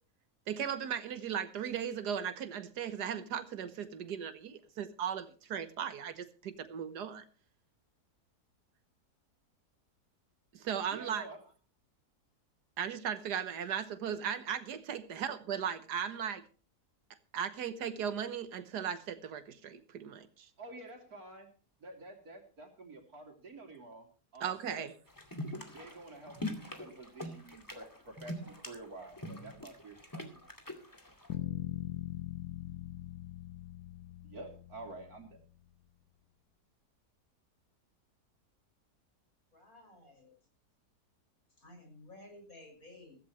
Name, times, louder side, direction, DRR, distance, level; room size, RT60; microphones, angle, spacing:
voice 1, 0.5-7.2 10.5-11.2 12.8-16.4 17.3-20.5 24.4-24.9, right 8 dB, 90° right, 11 dB, 1.7 m, -37 dB
voice 2, 10.9-11.4 20.6-21.5 21.8-24.1 24.3-24.9 25.7-30.5 34.2-35.4, right 2 dB, 65° right, 2 dB, 3.7 m, -49 dB
sound 1, 25.1-31.3, left 1 dB, 10° left, 2.3 m, -43 dB
sound 2, 31.3-35.4, left 15 dB, 90° left, 1.4 m, -41 dB
voice 3, 39.5-40.4 41.6-43.2, left 2 dB, 60° left, 3 dB, 6.4 m, -54 dB
15.5 x 15.0 x 3.1 m, 0.38 s
omnidirectional pair, 1.7 m